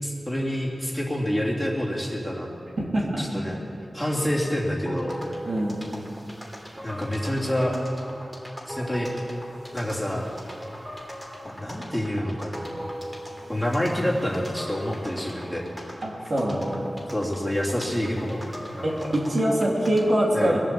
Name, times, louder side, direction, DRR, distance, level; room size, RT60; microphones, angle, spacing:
voice 1, 0.0-2.5 3.2-3.6 3.9-5.2 6.8-7.7 8.7-9.1 9.7-10.3 11.6-12.8 13.5-15.6 17.1-18.5 18.7-18.9 20.3-20.6, equal, 5° left, -4 dB, 2.9 m, -27 dB
voice 2, 2.8-3.5 5.5-5.8 16.0-16.7 18.8-20.6, right 1 dB, 60° right, -3 dB, 3.0 m, -24 dB
sound 1, 4.9-20.2, equal, 15° right, 3.2 m, -39 dB
21.0 x 7.5 x 7.7 m, 2.8 s
wide cardioid pair, 65°, 0 cm